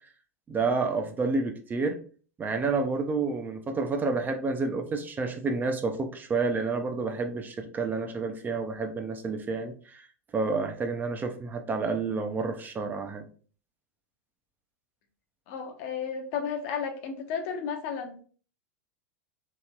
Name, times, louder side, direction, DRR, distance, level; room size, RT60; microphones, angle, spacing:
voice 1, 0.5-2.0 2.4-10.1 10.3-13.3, right 4 dB, 20° right, 5 dB, 0.4 m, -29 dB
voice 2, 15.5-18.2, left 6 dB, 55° left, 5 dB, 0.6 m, -33 dB
3.0 x 2.8 x 2.2 m, 0.41 s
figure-of-eight pair, 90°, 9 cm